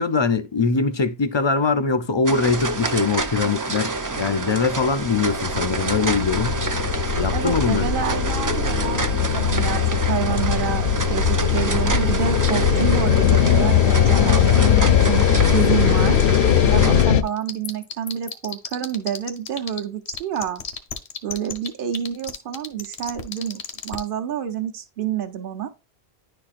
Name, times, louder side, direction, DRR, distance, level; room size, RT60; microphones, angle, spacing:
voice 1, 0.0-6.6 7.2-7.9, left 4 dB, 40° left, 0.4 m, -22 dB
sound 1, 2.2-17.0, right 3 dB, 30° right, 0.4 m, -28 dB
sound 2, 4.7-17.2, left 8 dB, 65° left, 0.7 m, -19 dB
voice 2, 7.3-14.5 14.9-16.2 16.7-20.6 21.2-25.7, right 9 dB, 55° right, 1.0 m, -28 dB
sound 3, 17.3-19.8 20.1-24.0, left 7 dB, 85° left, 1.3 m, -31 dB
10.5 x 4.3 x 2.5 m
omnidirectional pair, 1.1 m